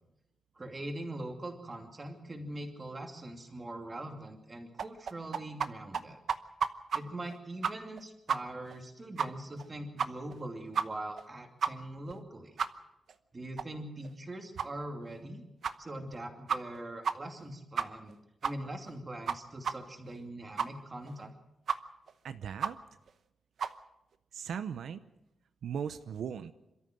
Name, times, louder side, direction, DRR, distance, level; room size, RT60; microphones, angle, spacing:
voice 1, 0.5-6.2 6.9-12.6 13.3-15.4 15.8-18.2 18.4-21.3, right 1 dB, 25° right, 3 dB, 2.7 m, -42 dB
sound 1, 4.8-5.7 5.9-6.0 6.3-7.0 7.3-7.4 7.6-8.0 8.3-8.4 8.7-8.8 9.2-9.3 9.6-9.7 10.0-10.3 10.7-10.8 11.2-11.3 11.6-11.7 12.1-12.2 12.6-12.7 13.1-13.2 13.6-13.7 14.0-14.1 14.6-14.7 15.1-15.2 15.6-15.7 16.1-16.2 16.5-16.8 17.0-17.1 17.4-17.5 17.8-18.1 18.4-18.5 18.9-19.0 19.3-19.4 19.6-19.7 20.1-20.2 20.6-20.7 21.1-21.2 21.7-21.8 22.1-22.2 22.6-22.7 23.1-23.2 23.6-23.7, right 6 dB, 60° right, 0.9 m, -31 dB
voice 2, 22.2-22.8 24.3-25.0 25.6-26.5, right 7 dB, 85° right, 11 dB, 0.7 m, -38 dB
27.0 x 13.5 x 7.7 m, 0.93 s
wide cardioid pair, 165°, 0 cm